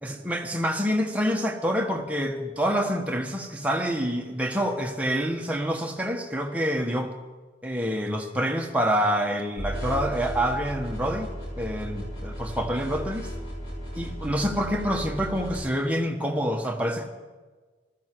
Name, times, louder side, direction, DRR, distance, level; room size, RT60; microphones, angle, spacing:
voice 1, 0.0-7.1 7.6-11.3 11.6-13.3 13.9-17.1, equal, 5° right, 1 dB, 1.3 m, -27 dB
sound 1, 9.6-15.6, equal, 30° left, 6.8 m, -35 dB
20.0 x 13.5 x 4.6 m, 1.3 s
head